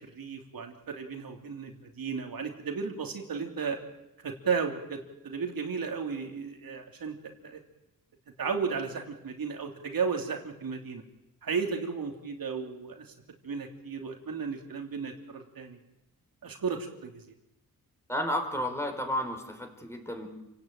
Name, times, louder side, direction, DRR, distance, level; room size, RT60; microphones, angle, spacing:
voice 1, 0.0-3.8 4.2-7.6 8.4-11.0 11.4-13.1 13.4-15.8 16.4-17.2, right 5 dB, 75° right, 3 dB, 3.2 m, -34 dB
voice 2, 18.1-20.3, left 1 dB, 5° left, 3 dB, 4.6 m, -32 dB
29.0 x 17.5 x 9.2 m, 0.93 s
wide cardioid pair, 150°, 35 cm